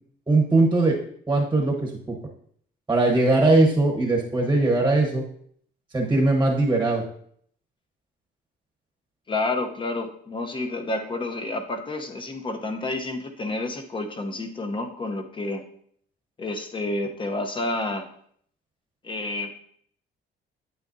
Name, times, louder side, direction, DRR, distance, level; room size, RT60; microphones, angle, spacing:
voice 1, 0.3-1.0 1.3-2.2 2.9-5.2 5.9-7.0, right 2 dB, 15° right, 0 dB, 1.1 m, -20 dB
voice 2, 9.3-15.6 16.4-18.1 19.0-19.5, left 2 dB, 25° left, 5 dB, 0.8 m, -29 dB
8.8 x 8.8 x 2.6 m, 0.63 s
cardioid pair, 165°, 20 cm